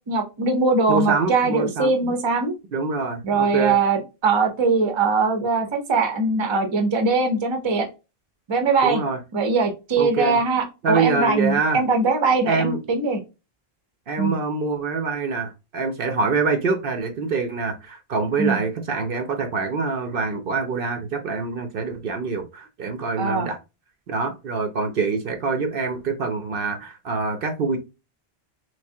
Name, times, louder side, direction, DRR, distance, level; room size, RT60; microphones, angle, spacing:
voice 1, 0.1-2.5 3.2-7.9 8.5-9.0 9.3-13.2 14.2-14.4 18.4-18.6 23.2-23.5, right 4 dB, 30° right, 0.6 m, -21 dB
voice 2, 0.9-2.1 2.7-3.8 8.8-9.2 10.0-10.4 10.8-11.8 12.5-12.8 14.1-23.6 24.1-27.8, right 4 dB, 65° right, 0.8 m, -25 dB
3.3 x 3.1 x 2.7 m
omnidirectional pair, 1.0 m